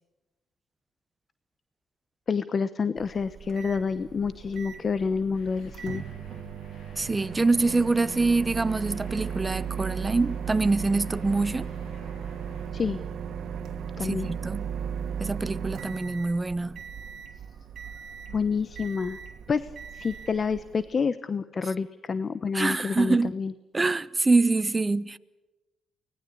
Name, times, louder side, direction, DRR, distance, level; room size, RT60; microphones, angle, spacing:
voice 1, 2.3-6.0 12.7-13.0 14.0-14.3 18.3-19.2 19.5-23.5, left 5 dB, 40° left, 0.9 m, -28 dB
Microwave oven, 3.0-20.9, right 7 dB, 65° right, 2.2 m, -37 dB
Truck, 5.3-12.7, left 3 dB, 80° left, 7.6 m, -53 dB
voice 2, 7.0-11.7 14.0-14.7 15.2-16.8 22.5-23.3 23.7-25.2, right 3 dB, 20° right, 0.9 m, -25 dB
24.5 x 19.5 x 8.5 m
cardioid pair, 90°, 0 cm